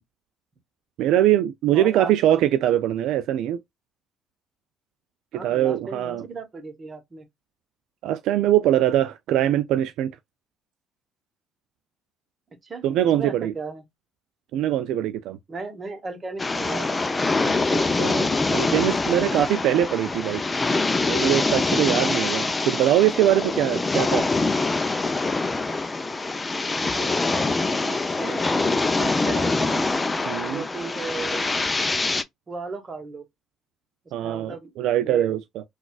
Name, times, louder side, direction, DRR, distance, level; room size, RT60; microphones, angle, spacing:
voice 1, 1.0-3.6 5.3-6.2 8.0-10.1 12.8-13.5 14.5-15.4 17.7-20.4 21.1-24.3 30.3-30.6 34.1-35.6, right 12 dB, 75° right, 0.3 m, -22 dB
voice 2, 1.7-2.4 5.3-7.3 12.6-13.8 15.5-17.0 26.9-29.8 30.5-31.6 32.5-33.2 34.2-35.4, right 4 dB, 30° right, 1.2 m, -36 dB
sound 1, 16.4-32.2, left 3 dB, 20° left, 0.5 m, -24 dB
3.9 x 2.4 x 2.3 m
supercardioid pair, 90°, 0 cm